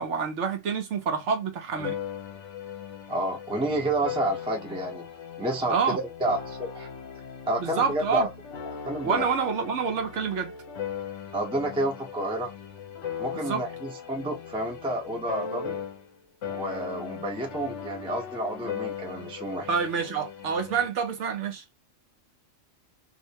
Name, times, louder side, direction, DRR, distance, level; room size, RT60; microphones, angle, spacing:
voice 1, 0.0-2.0 5.7-6.0 7.6-8.3 9.0-10.5 13.3-13.6 19.7-21.6, right 6 dB, 65° right, 1.0 m, -27 dB
sound 1, 1.7-16.2 16.4-20.9, left 7 dB, 65° left, 1.0 m, -38 dB
voice 2, 3.1-5.1 5.4-5.9 6.2-6.9 7.5-8.3 8.7-9.3 11.3-12.5 13.2-15.8 16.5-19.7, right 1 dB, 5° right, 0.6 m, -30 dB
2.7 x 2.1 x 2.7 m
omnidirectional pair, 1.4 m